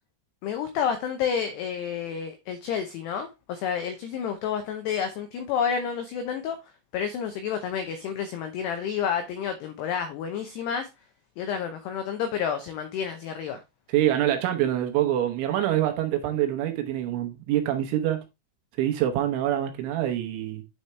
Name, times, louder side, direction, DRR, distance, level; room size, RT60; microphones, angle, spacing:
voice 1, 0.4-6.6 6.9-10.9 11.4-13.6, left 7 dB, 85° left, 2.3 m, -30 dB
voice 2, 13.9-18.2 18.8-20.6, right 12 dB, 75° right, 3.2 m, -25 dB
9.3 x 4.3 x 3.2 m
omnidirectional pair, 5.7 m